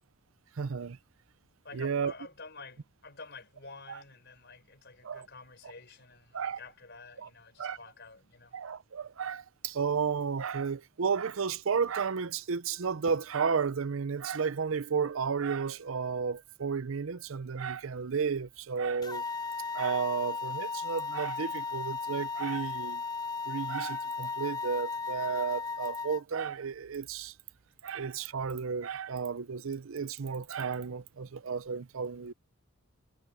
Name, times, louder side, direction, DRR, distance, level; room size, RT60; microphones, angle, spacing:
voice 1, 0.6-1.0 1.7-2.1 3.9-4.0 5.0-5.3 6.3-6.6 7.2-7.3 7.6-7.8 8.5-19.2 19.7-23.0 23.5-27.3 27.8-32.3, right 6 dB, 75° right, 0.6 m, -33 dB
voice 2, 1.6-8.6, left 4 dB, 50° left, 4.9 m, -50 dB
sound 1, 19.0-26.2, left 4 dB, 20° left, 0.9 m, -36 dB
head